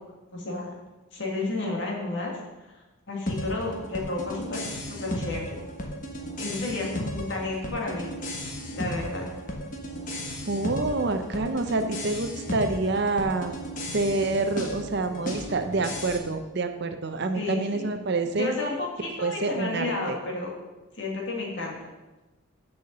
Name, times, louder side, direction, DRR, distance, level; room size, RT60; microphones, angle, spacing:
voice 1, 0.3-0.7 1.1-2.8 3.1-5.6 6.4-8.1 8.4-9.2 17.3-17.9 18.3-20.5 20.9-21.8, left 2 dB, 55° left, -2 dB, 2.1 m, -32 dB
sound 1, 3.3-16.2, equal, 35° left, 1.2 m, -35 dB
voice 2, 10.5-13.6 13.9-18.5 19.2-20.1, right 3 dB, 50° right, 8 dB, 0.6 m, -27 dB
6.9 x 5.7 x 6.7 m, 1.1 s
head